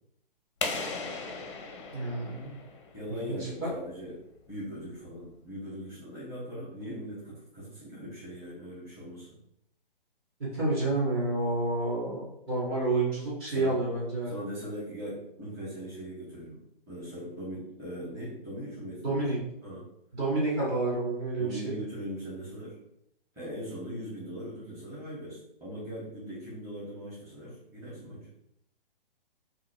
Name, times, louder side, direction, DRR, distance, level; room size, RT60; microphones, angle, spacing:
sound 1, 0.6-3.3, left 4 dB, 30° left, 0.6 m, -37 dB
voice 1, 1.9-2.5 3.1-3.7 10.5-12.2 12.5-14.3 19.0-19.4 20.1-21.7, right 2 dB, 25° right, -8 dB, 1.7 m, -29 dB
voice 2, 2.9-4.1 4.5-9.4 13.5-13.8 14.2-16.6 16.9-19.2 19.6-19.9 21.4-22.8 23.3-28.3, equal, 10° right, -10 dB, 1.7 m, -40 dB
3.7 x 2.8 x 4.6 m, 0.78 s
figure-of-eight pair, 125°, 29 cm